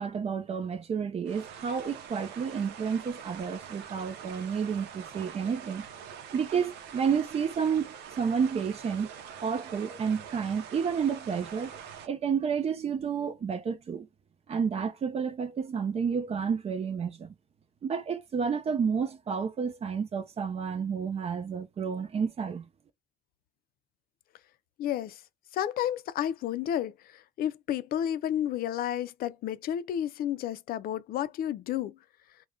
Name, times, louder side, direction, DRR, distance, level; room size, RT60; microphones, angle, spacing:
voice 1, 0.0-5.9 6.3-9.2 9.4-11.8 12.0-14.1 14.5-17.3 17.8-22.7, right 6 dB, 35° right, 0.7 m, -30 dB
sound 1, 1.2-12.1, right 8 dB, 85° right, 0.7 m, -45 dB
voice 2, 24.8-25.2 25.5-32.0, left 10 dB, 60° left, 0.5 m, -31 dB
2.4 x 2.2 x 3.6 m
cardioid pair, 110°, 17 cm